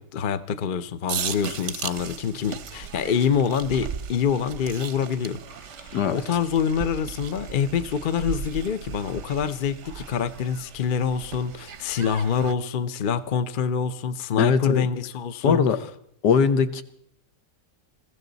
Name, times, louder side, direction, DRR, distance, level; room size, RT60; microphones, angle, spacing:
voice 1, 0.0-15.6, left 7 dB, 50° left, 13 dB, 0.6 m, -26 dB
sound 1, 1.1-12.5, right 7 dB, 55° right, 0.9 m, -37 dB
voice 2, 14.4-14.8 15.4-15.8 16.2-16.8, left 6 dB, 75° left, 11 dB, 1.6 m, -20 dB
20.5 x 15.5 x 4.0 m, 0.69 s
omnidirectional pair, 1.8 m